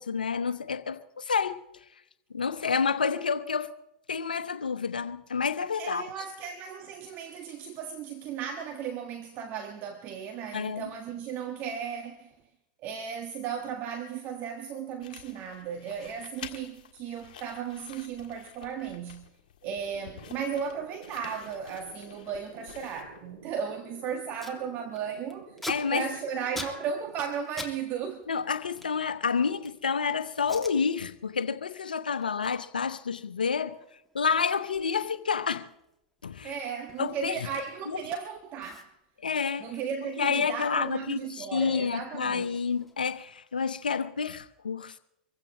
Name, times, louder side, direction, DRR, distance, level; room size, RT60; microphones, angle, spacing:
voice 1, 0.0-1.6 2.3-3.7 4.1-6.1 10.5-10.9 25.7-26.1 28.3-33.8 34.1-35.7 36.2-36.5 37.0-37.4 39.2-39.7 40.2-45.0, left 5 dB, 90° left, 1.0 m, -29 dB
voice 2, 5.8-12.3 12.8-19.2 19.6-25.6 25.9-28.3 36.4-38.9 39.6-42.6, right 7 dB, 45° right, 1.5 m, -35 dB
sound 1, 15.0-23.4, left 10 dB, 70° left, 1.7 m, -50 dB
sound 2, 19.6-27.1, right 2 dB, 80° right, 3.7 m, -51 dB
Packing tape duct tape, 23.9-24.0 24.1-24.6 24.9-27.8 28.0-29.9 30.4-30.8 31.2-31.5 31.8-38.0 38.3-38.4 38.6-41.0 41.3-43.2, left 2 dB, 5° left, 2.3 m, -46 dB
25.5 x 15.5 x 3.1 m
hypercardioid pair, 100°, 5 cm